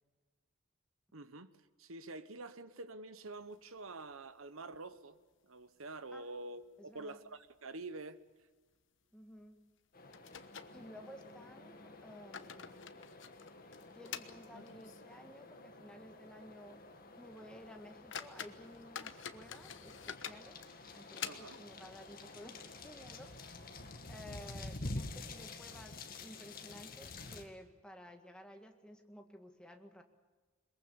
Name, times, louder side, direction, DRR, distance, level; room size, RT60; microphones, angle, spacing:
voice 1, 1.1-1.5 1.8-5.2 5.4-8.2 21.3-21.6, right 2 dB, 80° right, 1.2 m, -47 dB
sound 1, 3.4-4.4 4.7-4.8 5.1-5.2 5.8-6.3 6.6-6.8 7.4-7.6 7.9-8.0 9.4-9.5 10.1-11.3 12.0-15.2 15.5-15.6 16.2-16.3 16.7-16.9 17.4-17.5 17.9-21.8, left 8 dB, 60° left, 1.2 m, -48 dB
voice 2, 6.8-7.2 9.1-9.6 10.7-12.9 13.9-16.8 17.2-23.7 24.1-30.0, equal, 5° left, 1.8 m, -54 dB
sound 2, 9.9-27.4, left 2 dB, 45° left, 2.1 m, -49 dB
22.0 x 21.5 x 7.1 m
head